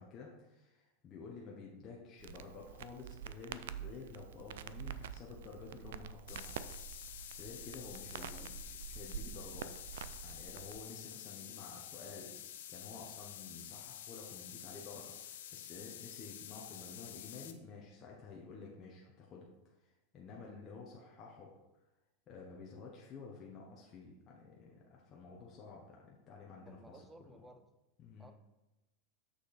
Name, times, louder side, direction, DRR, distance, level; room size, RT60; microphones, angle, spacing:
voice 1, 0.0-6.6 7.4-9.7 10.2-12.4 12.7-19.5 19.8-21.5 22.3-27.5 28.0-28.3, left 4 dB, 25° left, -3 dB, 0.9 m, -51 dB
Crackle, 2.2-10.8, right 9 dB, 80° right, 0.4 m, -47 dB
sound 1, 6.3-17.5, left 11 dB, 75° left, 0.6 m, -49 dB
voice 2, 8.2-8.5 26.6-27.6 28.2-28.3, right 2 dB, 5° right, 7 dB, 0.5 m, -57 dB
6.5 x 6.0 x 4.1 m, 1.0 s
supercardioid pair, 170°, 0 cm